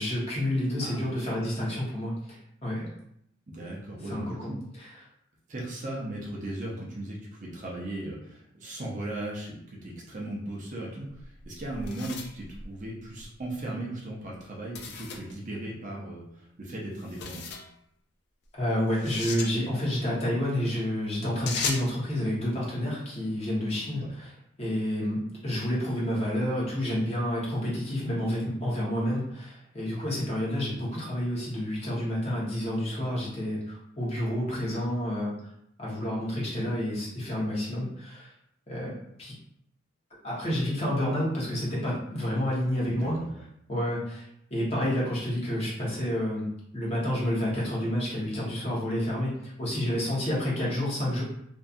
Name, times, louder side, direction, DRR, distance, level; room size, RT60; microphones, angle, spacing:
voice 1, 0.0-2.9 4.1-5.0 18.6-35.3 35.8-38.3 38.7-38.9 39.2-39.3 40.2-43.2 43.7-51.2, left 1 dB, 30° left, -6 dB, 0.9 m, -29 dB
voice 2, 0.8-1.3 3.5-4.6 5.5-17.4 24.0-24.1 42.8-43.4, right 1 dB, 40° right, -3 dB, 0.6 m, -37 dB
sound 1, 11.1-13.3 14.7-15.3 17.0-17.7 18.9-19.5 21.5-21.9, left 5 dB, 55° left, 0.4 m, -36 dB
2.6 x 2.4 x 2.4 m, 0.74 s
head